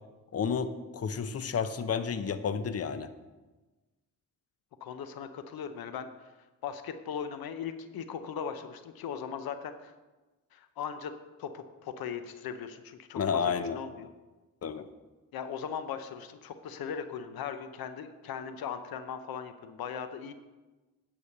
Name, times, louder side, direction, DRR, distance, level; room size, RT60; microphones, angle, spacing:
voice 1, 0.3-3.1 13.2-13.8 14.6-14.9, left 6 dB, 45° left, 12 dB, 0.7 m, -31 dB
voice 2, 4.8-6.3 6.6-9.9 10.5-11.1 11.4-14.1 15.3-20.3, left 7 dB, 85° left, 10 dB, 0.7 m, -39 dB
9.7 x 5.1 x 6.6 m, 1.2 s
cardioid pair, 70°, 35 cm